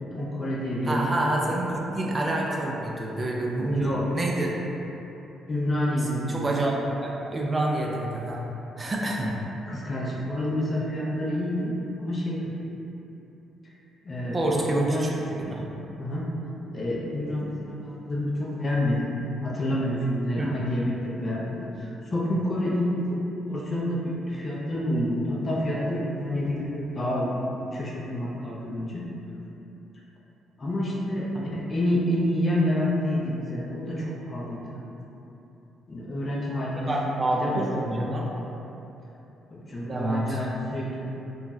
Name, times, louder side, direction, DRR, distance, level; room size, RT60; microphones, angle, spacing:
voice 1, 0.0-1.0 3.7-4.0 5.5-6.5 8.8-8.9 9.7-12.7 14.0-15.0 15.3-15.7 16.0-16.3 16.7-19.1 19.4-29.0 30.6-34.7 35.9-36.9 37.3-37.6 39.5-41.0, left 1 dB, 35° left, -5 dB, 0.5 m, -28 dB
voice 2, 0.8-4.6 6.3-6.8 7.0-8.4 8.8-9.4 14.3-15.1 15.5-15.7 20.4-20.5 31.3-31.4 36.8-38.3 39.8-40.4, right 1 dB, 30° right, -2 dB, 0.3 m, -27 dB
2.5 x 2.3 x 3.0 m, 3.0 s
cardioid pair, 90°, 0 cm